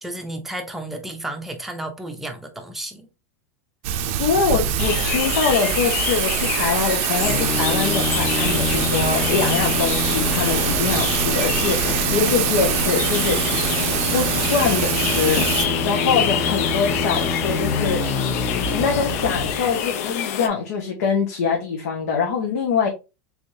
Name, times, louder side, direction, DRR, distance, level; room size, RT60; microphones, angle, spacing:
voice 1, 0.0-3.1 4.3-4.4 16.1-16.4, right 1 dB, 5° right, 0.6 m, -32 dB
Thunder / Rain, 3.8-15.7, right 10 dB, 55° right, 0.4 m, -24 dB
voice 2, 4.2-13.6 14.1-18.0 18.4-22.9, left 5 dB, 85° left, 1.1 m, -24 dB
sound 1, 4.8-20.5, left 9 dB, 70° left, 0.6 m, -27 dB
sound 2, 7.2-20.0, left 3 dB, 30° left, 0.7 m, -26 dB
3.5 x 3.4 x 2.7 m
supercardioid pair, 155°, 8 cm